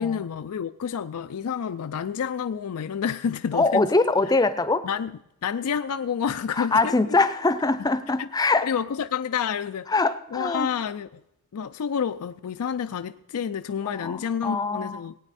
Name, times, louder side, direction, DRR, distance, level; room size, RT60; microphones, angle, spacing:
voice 1, 0.0-3.8 4.8-6.9 8.2-8.3 8.6-9.9 10.3-11.2 11.5-15.1, left 7 dB, 85° left, 9 dB, 0.4 m, -29 dB
voice 2, 3.5-4.9 6.6-8.7 9.9-10.7 13.8-15.0, left 3 dB, 15° left, 13 dB, 0.5 m, -23 dB
19.0 x 9.0 x 4.1 m, 0.83 s
head